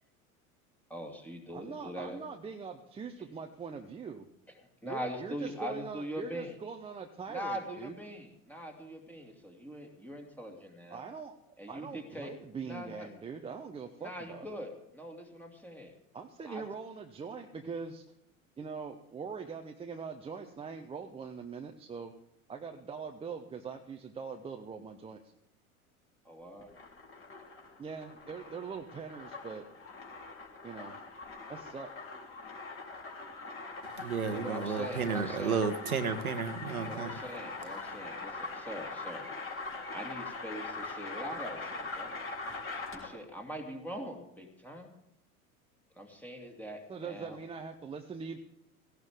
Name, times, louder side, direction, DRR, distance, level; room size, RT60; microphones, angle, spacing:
voice 1, 0.9-2.2 4.8-6.5 7.3-11.0 11.6-12.3 12.7-13.1 14.0-15.9 16.5-16.6 26.2-26.7 34.3-35.6 36.8-38.1 38.6-39.3 39.9-42.1 42.9-44.9 46.0-47.4, equal, 5° left, 3 dB, 2.3 m, -42 dB
voice 2, 1.5-4.3 4.8-8.0 10.9-11.3 11.7-14.6 16.1-18.0 18.6-22.1 22.5-25.3 27.8-29.6 30.6-31.0 31.7-31.9 46.9-48.4, right 5 dB, 15° right, 3 dB, 0.7 m, -42 dB
sound 1, 26.6-43.2, left 3 dB, 30° left, 3.7 m, -42 dB
voice 3, 33.8-37.2, right 5 dB, 75° right, 9 dB, 1.2 m, -33 dB
17.0 x 15.0 x 3.6 m, 0.79 s
figure-of-eight pair, 80°, 44 cm